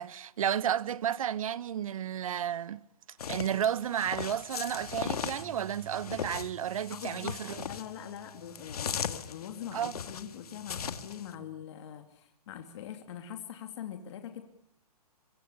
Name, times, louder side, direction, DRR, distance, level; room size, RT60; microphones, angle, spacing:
voice 1, 0.0-2.8 3.3-7.6 9.7-9.9, right 9 dB, 60° right, 1.0 m, -32 dB
sound 1, 3.2-11.3, left 7 dB, 70° left, 2.1 m, -38 dB
sound 2, 5.4-11.6, right 15 dB, 30° right, 1.8 m, -54 dB
voice 2, 6.9-7.4 7.6-14.4, left 9 dB, 45° left, 2.6 m, -43 dB
24.0 x 24.0 x 6.9 m
hypercardioid pair, 155°, 20 cm